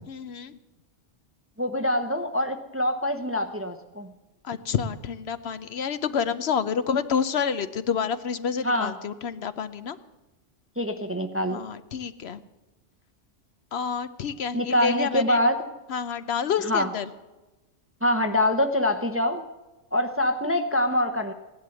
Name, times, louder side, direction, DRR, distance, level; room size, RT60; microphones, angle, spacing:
voice 1, 0.1-0.6 4.4-10.0 11.5-12.4 13.7-15.4 15.9-17.1, left 7 dB, 65° left, 13 dB, 0.9 m, -28 dB
voice 2, 1.6-4.1 8.6-8.9 10.8-11.6 14.5-15.6 16.7-16.9 18.0-19.4 19.9-21.3, left 1 dB, 15° right, 7 dB, 0.7 m, -24 dB
17.0 x 11.0 x 7.7 m, 1.1 s
omnidirectional pair, 1.2 m